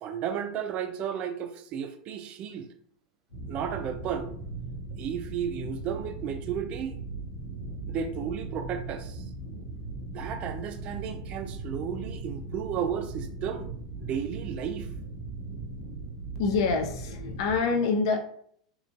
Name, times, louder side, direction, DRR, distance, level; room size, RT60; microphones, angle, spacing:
voice 1, 0.0-2.7 3.5-4.3 5.0-7.0 7.9-9.2 10.1-13.7 14.0-14.9, right 8 dB, 40° right, 0.3 m, -33 dB
sound 1, 3.3-17.6, right 3 dB, 80° left, 1.0 m, -38 dB
voice 2, 16.4-18.3, left 4 dB, 60° left, 0.4 m, -26 dB
3.0 x 2.5 x 2.3 m
figure-of-eight pair, 90°, 3 cm